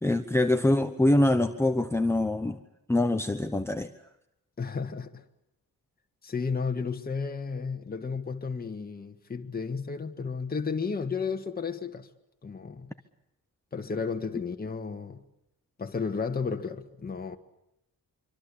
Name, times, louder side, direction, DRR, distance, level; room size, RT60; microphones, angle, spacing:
voice 1, 0.0-2.6 2.9-3.9, left 1 dB, 5° left, 1.0 m, -24 dB
voice 2, 4.6-5.2 6.2-12.1 12.4-12.9 13.7-15.2 15.8-17.4, left 5 dB, 25° left, 1.8 m, -33 dB
25.5 x 25.5 x 8.6 m
wide cardioid pair, 180°, 36 cm